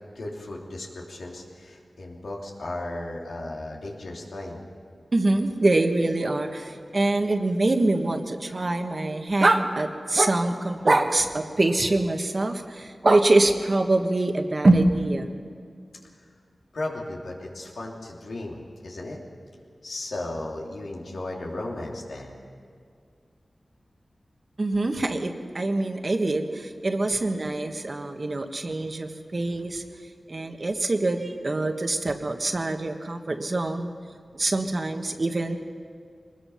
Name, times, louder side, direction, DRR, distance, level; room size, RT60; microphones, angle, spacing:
voice 1, 0.1-4.6 16.7-19.2 19.8-22.4, left 2 dB, 85° left, -2 dB, 3.1 m, -35 dB
voice 2, 5.1-15.5 24.6-29.8 30.3-33.9 34.3-35.6, right 2 dB, 45° right, 5 dB, 1.4 m, -24 dB
23.5 x 20.5 x 5.8 m, 2.2 s
wide cardioid pair, 85°, 0 cm